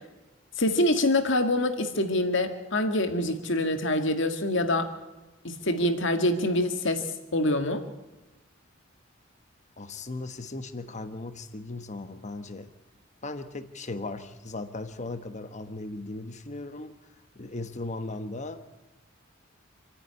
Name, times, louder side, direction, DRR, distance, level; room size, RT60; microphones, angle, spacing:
voice 1, 0.6-4.9 5.4-7.0 7.3-7.8, left 1 dB, 60° left, 7 dB, 2.0 m, -25 dB
voice 2, 9.8-12.7 13.2-17.0 17.4-18.7, left 2 dB, 35° left, 10 dB, 1.2 m, -37 dB
28.0 x 9.8 x 9.8 m, 1.1 s
head